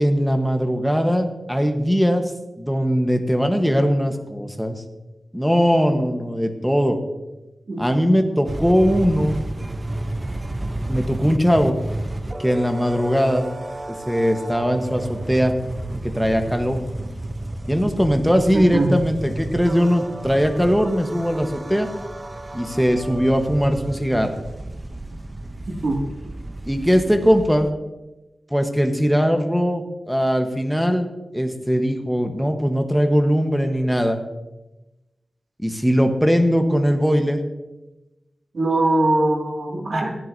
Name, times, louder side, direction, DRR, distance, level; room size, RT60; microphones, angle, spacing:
voice 1, 0.0-2.3 2.6-4.8 5.3-7.0 7.8-9.4 10.9-11.7 12.4-13.4 14.1-15.5 16.0-16.8 17.7-21.9 22.5-24.3 26.7-27.7 28.5-34.2 35.6-37.4, equal, ahead, 5 dB, 1.1 m, -20 dB
sound 1, 8.4-27.7, right 1 dB, 30° right, 0.7 m, -32 dB
voice 2, 18.5-18.9 25.7-26.0 38.5-40.1, right 2 dB, 65° right, -1 dB, 2.2 m, -21 dB
14.0 x 10.0 x 2.7 m, 1.0 s
wide cardioid pair, 65°, 0 cm